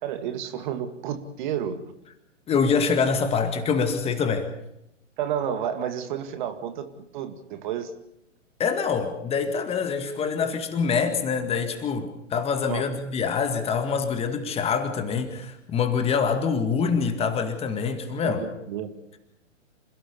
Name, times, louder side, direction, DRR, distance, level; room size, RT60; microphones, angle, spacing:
voice 1, 0.0-1.8 5.2-7.9 12.7-12.9 18.2-18.9, right 9 dB, 40° right, 9 dB, 2.2 m, -31 dB
voice 2, 2.5-4.5 8.6-18.5, left 5 dB, 15° left, 7 dB, 2.0 m, -25 dB
27.5 x 16.5 x 6.9 m, 0.82 s
figure-of-eight pair, 125°, 38 cm